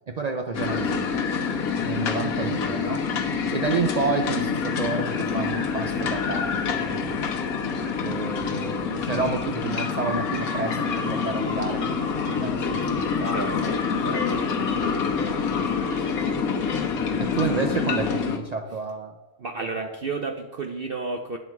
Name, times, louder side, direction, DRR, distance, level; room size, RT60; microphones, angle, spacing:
voice 1, 0.1-1.0 1.8-3.0 3.5-7.3 8.0-13.8 14.4-16.5 17.2-19.2 19.8-19.9, right 4 dB, 75° right, 4 dB, 0.3 m, -31 dB
sound 1, 0.5-18.4, left 5 dB, 70° left, 1.4 m, -26 dB
voice 2, 13.3-14.5 19.4-21.4, right 3 dB, 50° right, 3 dB, 0.7 m, -32 dB
9.5 x 7.7 x 4.6 m, 1.1 s
omnidirectional pair, 1.6 m